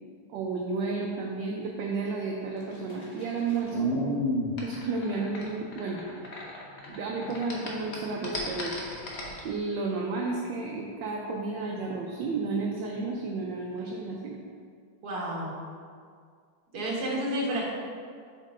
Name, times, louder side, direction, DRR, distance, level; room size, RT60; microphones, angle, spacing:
voice 1, 0.3-3.9 4.6-6.0 6.9-8.7 9.4-14.4, right 3 dB, 70° right, -2 dB, 1.2 m, -32 dB
sound 1, 2.6-7.0 7.2-9.4, left 1 dB, 50° left, 0.9 m, -32 dB
voice 2, 15.0-15.6 16.7-17.6, right 1 dB, 55° right, -4 dB, 1.6 m, -30 dB
7.4 x 5.4 x 2.5 m, 2.1 s
omnidirectional pair, 2.2 m